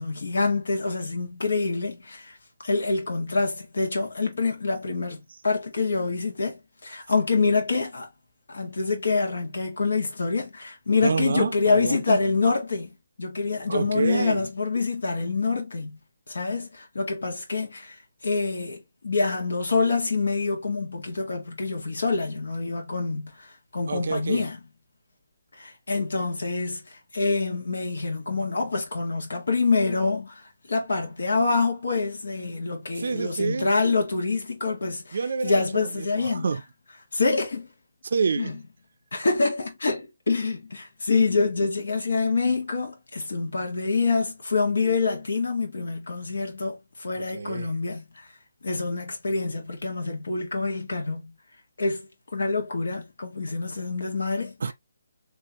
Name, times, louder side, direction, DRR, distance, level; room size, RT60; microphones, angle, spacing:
voice 1, 0.0-2.4 2.6-8.1 8.5-12.9 13.2-16.0 16.3-17.9 18.2-23.3 23.7-24.6 25.6-26.8 27.1-30.4 30.7-36.4 37.1-37.7 38.4-38.6 39.1-48.2 48.6-51.3 51.8-52.0 52.3-54.5, left 4 dB, 75° left, 1.5 m, -26 dB
voice 2, 11.0-12.2 13.7-14.4 23.9-24.4 33.0-33.7 35.1-36.6 38.0-38.5 47.1-47.7 54.6-54.7, right 5 dB, 60° right, 0.4 m, -28 dB
3.6 x 3.0 x 2.8 m
hypercardioid pair, 170°, 0 cm